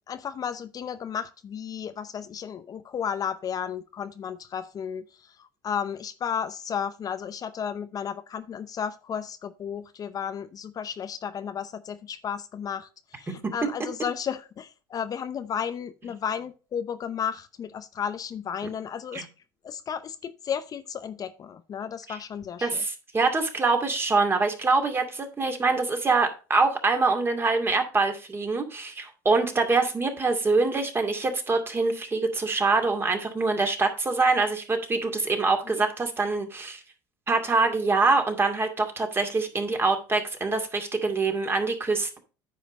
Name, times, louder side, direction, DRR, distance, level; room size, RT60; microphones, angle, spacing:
voice 1, 0.1-19.3 19.6-22.8 35.6-35.7, left 8 dB, 40° left, 0.7 m, -33 dB
voice 2, 22.6-36.8 37.3-42.2, right 3 dB, 25° right, 2.3 m, -25 dB
9.4 x 5.0 x 5.0 m
supercardioid pair, 95°, 10 cm